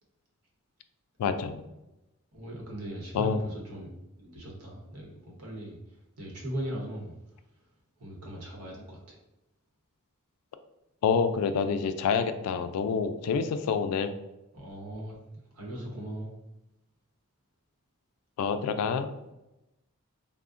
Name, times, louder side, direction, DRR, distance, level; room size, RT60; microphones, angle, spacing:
voice 1, 1.2-1.6 3.1-3.4 11.0-14.1 18.4-19.1, left 6 dB, 85° left, 11 dB, 0.3 m, -27 dB
voice 2, 2.3-3.9 4.2-5.8 6.2-7.1 8.0-9.2 14.5-15.2 15.5-16.3, equal, 85° right, -2 dB, 0.9 m, -39 dB
3.6 x 2.0 x 2.4 m, 0.93 s
head